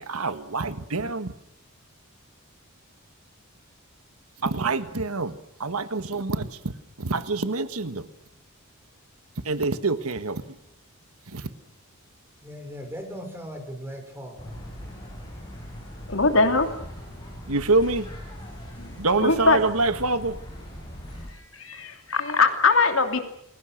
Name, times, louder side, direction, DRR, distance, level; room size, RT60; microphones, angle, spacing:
voice 1, 0.0-1.3 4.4-6.7 7.0-8.1 9.4-10.6 11.3-11.5 17.5-18.1 19.0-20.4, right 3 dB, 80° right, 11 dB, 1.5 m, -26 dB
voice 2, 12.4-14.6, equal, 10° right, 4 dB, 6.0 m, -38 dB
sound 1, 14.4-21.3, equal, 20° left, 7.8 m, -40 dB
voice 3, 16.1-16.7 18.8-18.9 19.2-19.6 21.6-23.2, left 4 dB, 65° left, 6 dB, 2.9 m, -21 dB
29.5 x 22.0 x 6.6 m, 0.75 s
head